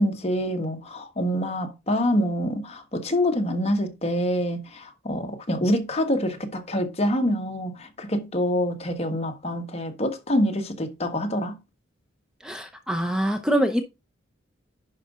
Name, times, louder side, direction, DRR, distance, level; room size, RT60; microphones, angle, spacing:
voice 1, 0.0-11.6, equal, 30° left, 1.5 m, -26 dB
voice 2, 12.4-13.8, equal, 5° right, 0.6 m, -24 dB
10.5 x 5.2 x 3.7 m
head